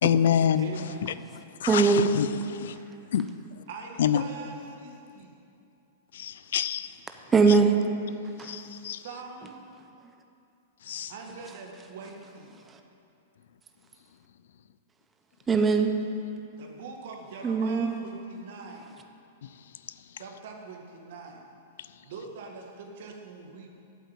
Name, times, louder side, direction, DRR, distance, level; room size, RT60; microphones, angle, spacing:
voice 1, 0.0-1.1 1.6-2.8 3.1-3.3 4.0-4.2 6.1-7.0 8.4-9.0 10.8-11.1 19.4-19.5, left 9 dB, 75° left, 0.4 m, -27 dB
voice 2, 0.6-1.3 2.7-3.0 3.7-5.4 8.6-9.7 11.1-12.6 16.6-18.9 20.2-21.4 22.0-23.7, right 4 dB, 65° right, 1.9 m, -43 dB
voice 3, 1.7-2.1 7.3-7.8 8.4-8.5 12.7-12.8 15.5-16.0 17.4-17.9, right 5 dB, 15° right, 0.8 m, -21 dB
8.3 x 8.2 x 8.2 m
hypercardioid pair, 125°, 0 cm